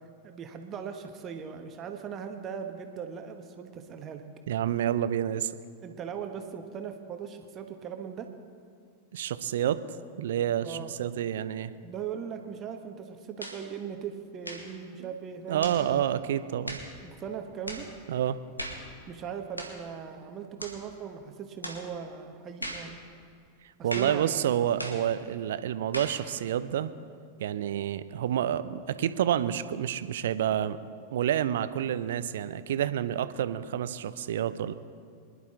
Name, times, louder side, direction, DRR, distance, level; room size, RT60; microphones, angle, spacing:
voice 1, 0.2-4.2 5.8-8.3 10.6-10.9 11.8-16.0 17.0-17.9 19.1-23.0 23.8-24.4, right 7 dB, 30° right, 5 dB, 1.3 m, -39 dB
voice 2, 4.5-5.5 9.1-9.8 10.2-11.7 15.0-15.1 15.5-16.8 18.1-18.4 23.8-26.9 27.4-30.8 31.1-34.7, right 10 dB, 60° right, 14 dB, 0.6 m, -29 dB
sound 1, 13.4-13.6 14.4-14.7 15.6-15.8 16.7-16.9 17.7-17.9 18.6-18.9 19.6-19.8 20.6-20.8 21.6-21.9 22.6-22.9 23.9-24.2 24.8-25.1 25.9-26.2, equal, 85° left, 1.9 m, -38 dB
24.5 x 11.0 x 3.8 m, 2.2 s
figure-of-eight pair, 90°, 0 cm